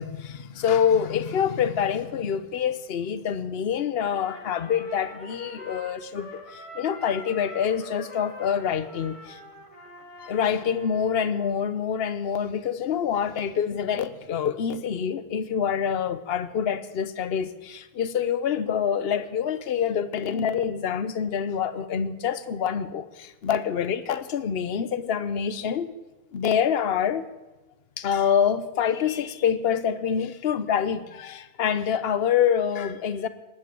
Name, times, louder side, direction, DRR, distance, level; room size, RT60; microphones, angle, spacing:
voice 1, 0.0-9.4 10.2-25.9 26.3-27.3 28.0-33.3, left 8 dB, 75° left, 13 dB, 1.0 m, -26 dB
Trumpet, 4.0-11.5, left 1 dB, 30° left, 2.4 m, -44 dB
19.5 x 9.2 x 7.6 m, 1.1 s
omnidirectional pair, 1.0 m